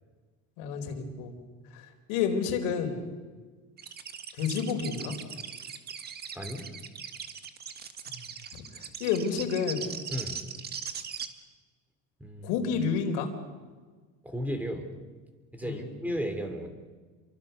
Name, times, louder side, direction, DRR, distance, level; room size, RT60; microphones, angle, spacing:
voice 1, 0.6-1.3 1.7-3.0 4.3-5.1 8.1-8.3 8.6-8.7 9.0-9.9 12.4-13.3 15.6-15.9, left 6 dB, 90° left, 5 dB, 4.4 m, -30 dB
sound 1, 3.8-11.3, right 7 dB, 30° right, 1.7 m, -39 dB
voice 2, 12.2-12.5 14.2-14.8 15.5-16.7, equal, 5° right, 6 dB, 2.9 m, -34 dB
29.0 x 23.5 x 6.9 m, 1.4 s
cardioid pair, 155°, 32 cm